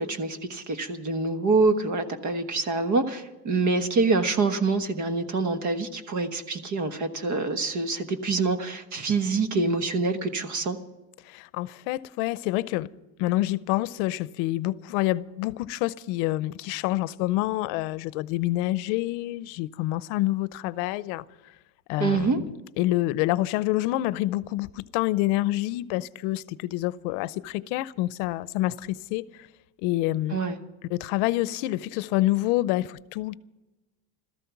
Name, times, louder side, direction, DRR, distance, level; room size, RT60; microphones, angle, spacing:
voice 1, 0.0-10.8 22.0-22.4 30.3-30.6, right 3 dB, 35° right, 1.3 m, -26 dB
voice 2, 11.3-12.9 13.2-21.2 21.9-22.5 22.8-29.2 29.8-30.4 30.9-33.4, left 17 dB, 80° left, 0.7 m, -27 dB
16.5 x 14.0 x 5.9 m
cardioid pair, 150°, 50 cm